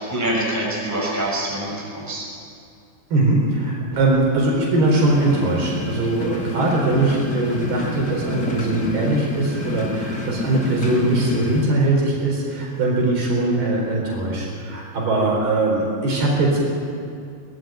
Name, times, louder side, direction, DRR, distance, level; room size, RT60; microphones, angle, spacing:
voice 1, 0.0-2.3, right 1 dB, 5° right, -3 dB, 5.6 m, -25 dB
voice 2, 3.1-16.6, right 2 dB, 65° right, -2 dB, 6.2 m, -21 dB
sound 1, 4.8-11.6, left 3 dB, 30° left, 2.1 m, -29 dB
22.0 x 19.0 x 9.2 m, 2.3 s
omnidirectional pair, 5.0 m